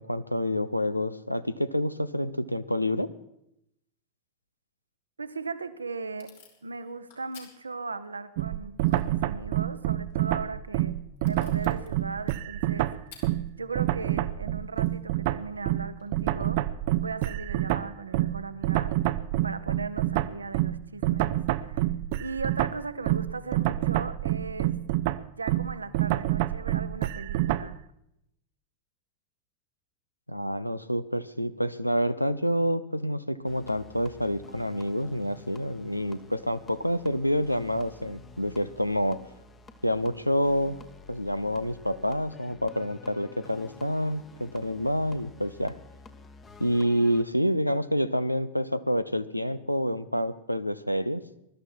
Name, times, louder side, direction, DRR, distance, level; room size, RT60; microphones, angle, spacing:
voice 1, 0.0-3.1 30.3-39.2 39.8-40.8 41.1-45.7 46.6-51.2, equal, 90° left, 14 dB, 0.7 m, -28 dB
voice 2, 5.2-11.0 11.2-12.9 13.6-18.9 19.4-21.9 22.2-24.8 25.4-27.8, right 4 dB, 80° right, 12 dB, 0.9 m, -37 dB
Packing tape duct tape / Tearing, 5.3-16.1, left 6 dB, 60° left, 3.6 m, -59 dB
sound 1, 8.4-13.5 13.8-27.8, right 15 dB, 50° right, 0.6 m, -27 dB
sound 2, 33.4-47.2, left 4 dB, 20° left, 1.3 m, -50 dB
20.5 x 12.5 x 4.6 m, 0.80 s
figure-of-eight pair, 90°, 0 cm